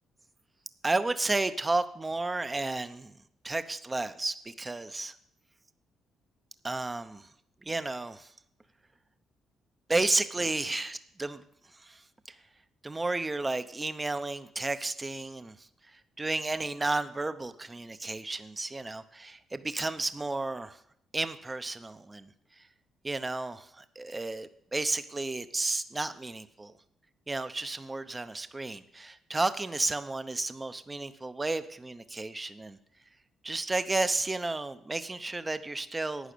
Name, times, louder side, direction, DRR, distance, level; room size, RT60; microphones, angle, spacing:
voice 1, 0.8-3.1 3.4-5.1 6.6-7.3 7.6-8.3 9.9-11.4 11.8-12.0 12.8-15.6 16.2-20.8 21.1-22.3 23.0-26.7 27.3-32.8 33.4-36.3, right 2 dB, 20° right, 12 dB, 0.7 m, -32 dB
11.5 x 9.0 x 6.8 m, 0.70 s
cardioid pair, 90°, 0 cm